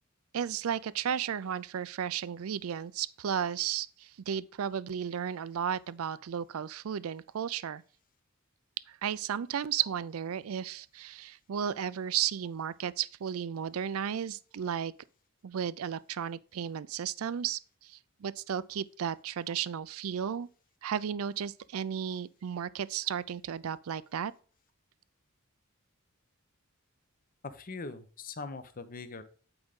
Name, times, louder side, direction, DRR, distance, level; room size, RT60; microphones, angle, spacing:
voice 1, 0.3-7.8 8.9-14.9 15.4-20.5 20.8-24.3, right 8 dB, 75° right, 0.4 m, -34 dB
voice 2, 27.4-29.2, left 3 dB, 40° left, 0.7 m, -41 dB
8.8 x 4.9 x 3.7 m
head